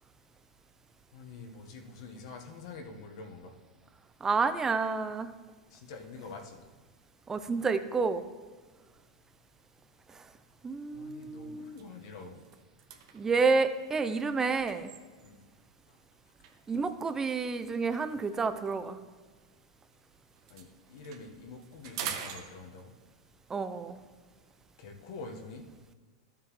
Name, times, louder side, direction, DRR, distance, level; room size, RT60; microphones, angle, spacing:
voice 1, 1.1-3.5 5.7-6.6 10.9-12.4 15.2-15.4 20.5-22.9 24.8-25.7, left 3 dB, 65° left, 2 dB, 1.3 m, -46 dB
voice 2, 4.2-5.3 7.3-8.2 10.1-10.3 10.6-11.8 13.1-14.9 16.7-19.0 23.5-24.0, right 4 dB, 15° right, 11 dB, 0.6 m, -29 dB
sound 1, 10.5-10.7 11.2-11.3 11.6-15.6 16.4-20.0 20.3-23.1, right 8 dB, 65° right, 1.1 m, -46 dB
12.5 x 7.4 x 3.2 m, 1.4 s
supercardioid pair, 130°, 3 cm